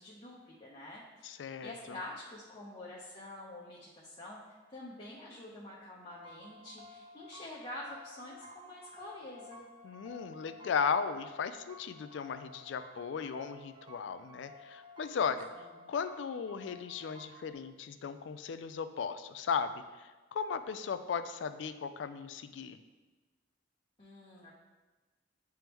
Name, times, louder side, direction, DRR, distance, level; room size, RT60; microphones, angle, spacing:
voice 1, 0.0-4.4 4.7-9.6 15.5-15.7 24.0-24.5, left 1 dB, 30° left, -6 dB, 0.8 m, -47 dB
voice 2, 1.2-2.0 9.8-15.5 15.9-19.7 20.0-22.8, left 6 dB, 70° left, 11 dB, 0.3 m, -36 dB
sound 1, 6.1-17.5, left 1 dB, 25° right, 0.6 m, -54 dB
8.9 x 3.5 x 3.0 m, 1.2 s
head